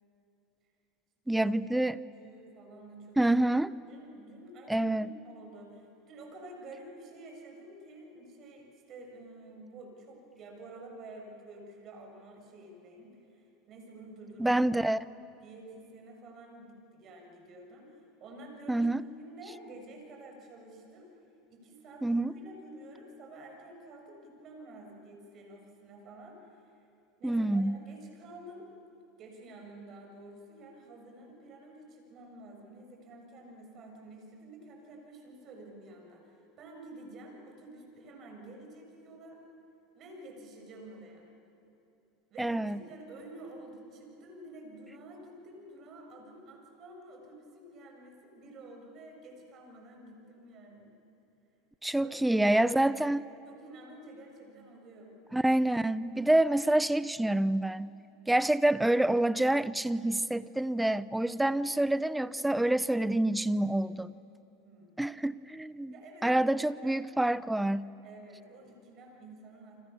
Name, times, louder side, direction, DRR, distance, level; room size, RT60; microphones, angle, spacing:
voice 1, 1.3-2.0 3.2-3.7 4.7-5.1 14.4-15.1 18.7-19.0 22.0-22.3 27.2-27.8 42.4-42.8 51.8-53.3 55.3-57.9 58.3-64.1 65.0-65.9 66.2-67.9, right 1 dB, 5° right, 17 dB, 0.7 m, -27 dB
voice 2, 1.8-3.2 3.5-14.6 15.4-21.1 21.5-26.8 27.2-28.7 29.2-39.4 39.9-41.3 42.3-50.9 52.0-52.1 52.4-52.9 53.4-55.2 64.6-65.2 65.9-67.1 68.0-69.8, right 2 dB, 45° right, 2 dB, 7.3 m, -50 dB
29.5 x 26.0 x 7.2 m, 2.9 s
supercardioid pair, 110°, 0 cm